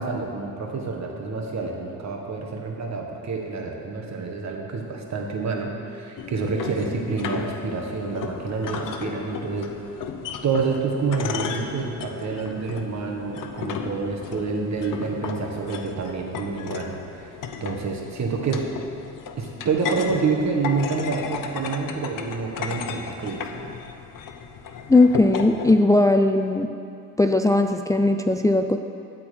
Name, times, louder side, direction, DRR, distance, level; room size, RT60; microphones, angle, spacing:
voice 1, 0.0-9.8 10.4-17.3 17.6-18.6 19.3-23.4, right 4 dB, 60° right, 1 dB, 1.7 m, -28 dB
sound 1, 6.2-25.7, left 6 dB, 85° left, 0.8 m, -35 dB
voice 2, 24.9-26.7 27.2-28.8, left 2 dB, 10° left, 5 dB, 0.4 m, -18 dB
13.0 x 4.5 x 8.5 m, 2.7 s
cardioid pair, 100°, 31 cm